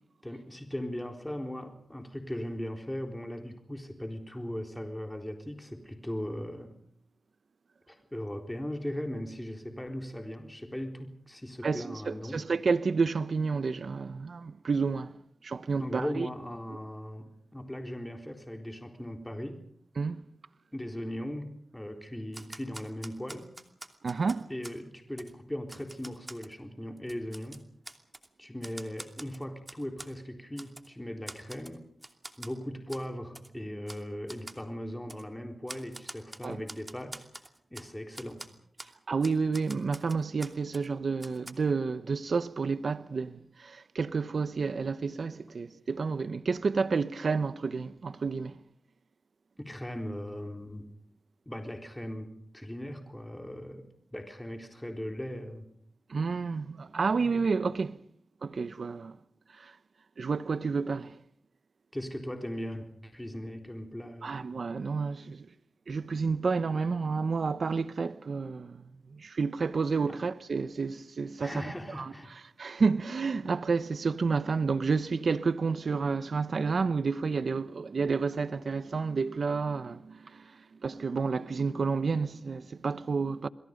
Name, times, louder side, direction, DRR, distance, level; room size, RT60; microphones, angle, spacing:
voice 1, 0.2-6.8 7.9-12.4 15.8-19.6 20.7-23.5 24.5-27.6 28.4-31.8 32.4-37.3 37.7-38.4 49.6-50.9 51.5-55.7 61.9-64.4 70.1-70.2 71.4-72.3, equal, 10° left, 4.0 m, -38 dB
voice 2, 11.6-15.1 15.4-16.3 20.0-20.2 24.0-24.5 36.4-36.6 39.1-48.5 56.1-58.0 58.4-59.1 59.6-59.7 60.2-61.1 64.2-65.5 65.9-68.8 69.1-71.5 72.0-72.1 72.6-80.4 80.8-83.5, right 4 dB, 70° right, 1.0 m, -30 dB
Typewriter, 22.3-24.8 25.2-25.3 25.7-26.5 27.0-28.3 28.6-30.1 30.6-30.9 31.3-31.8 32.0-32.5 32.9-33.0 33.3-33.5 33.9-34.0 34.3-34.6 35.1-35.2 35.7-37.9 38.1-38.5 38.8-38.9 39.2-40.9 41.2-41.5, right 1 dB, 25° right, 2.8 m, -45 dB
29.0 x 22.0 x 5.3 m
cardioid pair, 45°, 0 cm